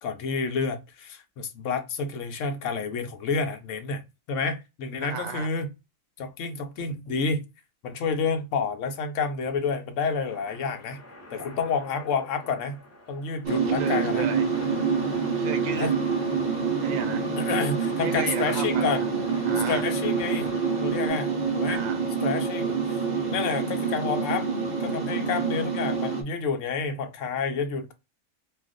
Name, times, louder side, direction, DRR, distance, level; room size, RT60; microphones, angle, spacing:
voice 1, 0.0-4.0 4.3-5.7 6.2-7.4 7.8-11.0 11.3-12.8 13.1-14.3 15.8-15.9 17.3-19.0 19.7-20.5 20.8-21.8 22.2-23.0 23.3-24.5 24.8-27.9, left 5 dB, 70° left, 0.9 m, -29 dB
voice 2, 5.0-5.5 13.7-14.5 15.3-15.9 16.8-17.3 18.0-19.1 19.4-19.8 21.7-22.1, right 7 dB, 80° right, 1.1 m, -34 dB
sound 1, 10.3-21.1, left 1 dB, 15° left, 0.7 m, -46 dB
sound 2, 13.4-26.2, right 5 dB, 45° right, 0.6 m, -27 dB
2.4 x 2.3 x 3.6 m
omnidirectional pair, 1.4 m